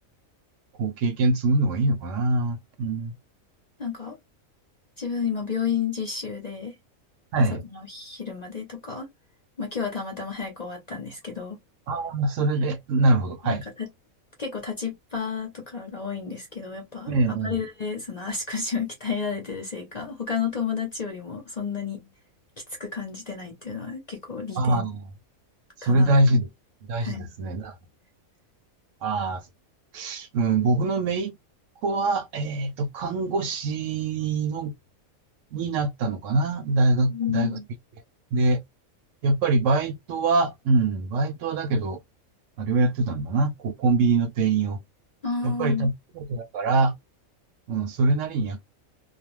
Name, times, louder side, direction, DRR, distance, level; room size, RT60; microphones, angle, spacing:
voice 1, 0.8-3.1 7.3-7.6 11.9-13.6 17.1-17.6 24.6-25.0 25.8-26.5 26.8-27.8 29.0-29.4 29.9-31.4 31.8-34.7 35.5-37.6 38.3-38.6 39.2-42.0 42.6-44.8 45.4-46.9 47.7-48.6, right 3 dB, 70° right, 0.9 m, -24 dB
voice 2, 3.8-4.2 5.0-6.7 7.4-9.1 9.6-11.6 13.4-13.9 14.4-22.1 22.8-24.8 25.8-26.4 27.0-27.3 37.0-37.7 45.2-45.9, left 6 dB, 40° left, 0.7 m, -31 dB
2.4 x 2.2 x 3.0 m
omnidirectional pair, 1.5 m